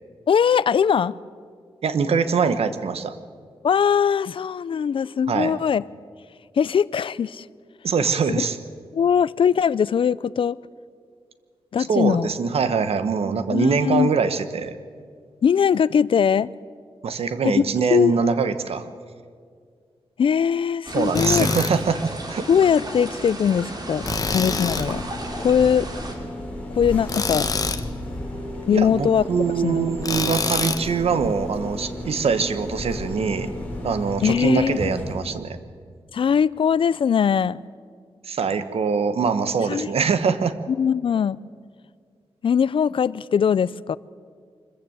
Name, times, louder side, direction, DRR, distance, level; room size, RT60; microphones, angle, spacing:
voice 1, 0.3-1.1 3.6-5.9 6.6-7.5 8.4-8.5 8.9-10.6 11.7-12.3 13.5-14.1 15.4-16.5 17.4-17.6 17.9-18.4 20.2-21.5 22.5-24.1 24.3-25.0 25.4-25.9 26.7-27.5 28.7-29.9 34.2-34.9 36.1-37.6 39.7-39.9 40.7-41.4 42.4-44.0, left 7 dB, 60° left, 0.4 m, -21 dB
voice 2, 1.8-3.1 5.3-5.5 7.8-8.6 11.9-14.8 17.0-18.8 20.9-22.5 28.7-33.5 33.8-35.6 38.2-40.5, right 5 dB, 90° right, 1.1 m, -23 dB
sound 1, 20.9-26.1, right 1 dB, 45° right, 2.9 m, -34 dB
Tools, 21.2-21.7 24.1-24.9 27.1-27.8 30.0-30.9, left 4 dB, 40° left, 0.9 m, -25 dB
sound 2, 24.0-35.1, left 1 dB, 15° left, 4.3 m, -33 dB
24.5 x 14.5 x 8.0 m
wide cardioid pair, 145°, 10 cm